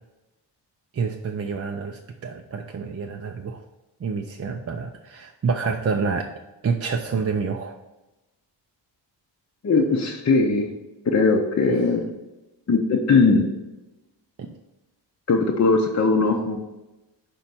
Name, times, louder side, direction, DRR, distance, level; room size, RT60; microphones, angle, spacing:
voice 1, 0.9-3.6 4.0-6.3 6.6-7.8 11.7-11.8 14.4-14.5, right 5 dB, 35° right, 2 dB, 0.4 m, -28 dB
voice 2, 9.6-10.7 11.0-12.1 12.7-13.5 15.3-16.6, left 4 dB, 35° left, 0 dB, 0.7 m, -20 dB
5.3 x 4.3 x 6.0 m, 1.0 s
wide cardioid pair, 130°, 43 cm